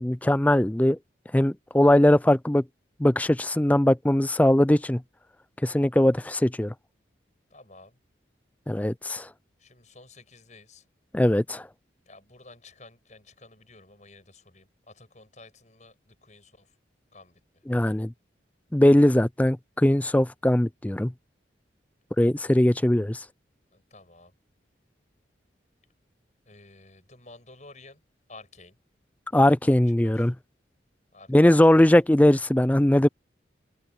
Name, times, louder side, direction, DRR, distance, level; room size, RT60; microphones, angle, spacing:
voice 1, 0.0-1.0 1.3-2.6 3.0-5.0 5.6-6.7 8.7-9.3 11.1-11.7 17.7-18.1 18.7-21.1 22.2-23.2 29.3-30.3 31.3-33.1, left 1 dB, 10° left, 0.4 m, -20 dB
voice 2, 7.5-8.0 9.6-10.8 12.1-16.8 17.1-17.6 23.7-24.3 26.5-28.0 28.3-28.8 29.4-30.3 31.1-31.9, left 3 dB, 40° left, 7.4 m, -52 dB
head